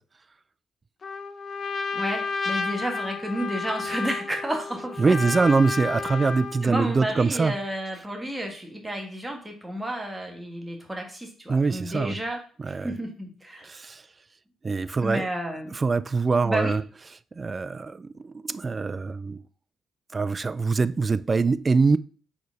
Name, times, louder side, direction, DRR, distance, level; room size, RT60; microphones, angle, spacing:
Trumpet, 1.0-6.7, left 4 dB, 40° left, 0.6 m, -31 dB
voice 1, 1.9-5.1 6.6-12.4 12.7-13.7 15.0-15.7 16.4-16.7, right 1 dB, 10° right, 1.6 m, -31 dB
voice 2, 5.0-7.5 11.5-12.2 12.6-12.9 13.6-14.0 14.6-15.3 15.7-16.8 17.4-19.4 20.1-22.0, right 4 dB, 30° right, 0.3 m, -24 dB
5.1 x 4.0 x 4.6 m
cardioid pair, 90°, 0 cm